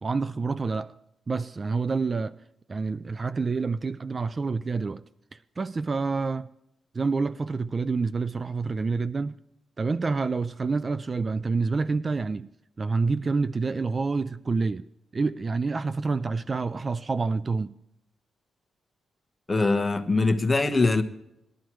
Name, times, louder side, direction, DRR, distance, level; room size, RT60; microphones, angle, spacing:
voice 1, 0.0-0.9 1.3-2.4 2.7-5.0 5.3-6.5 6.9-9.4 9.8-12.5 12.8-14.9 15.1-17.7, right 4 dB, 35° right, 0.4 m, -28 dB
voice 2, 19.5-21.0, left 3 dB, 25° left, 1.1 m, -22 dB
19.5 x 11.5 x 3.1 m
cardioid pair, 95°, 0 cm